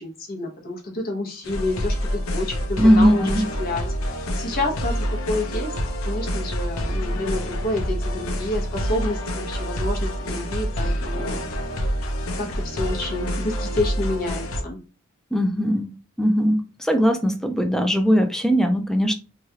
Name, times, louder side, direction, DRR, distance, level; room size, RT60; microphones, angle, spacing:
voice 1, 0.0-5.7 6.0-11.4 11.7-14.8, left 2 dB, 45° left, 0.9 m, -29 dB
sound 1, 1.4-14.6, equal, 90° left, 0.6 m, -27 dB
voice 2, 2.8-3.4 15.3-15.9 16.2-16.6 16.9-19.1, equal, ahead, 0.3 m, -19 dB
3.1 x 2.3 x 2.8 m
head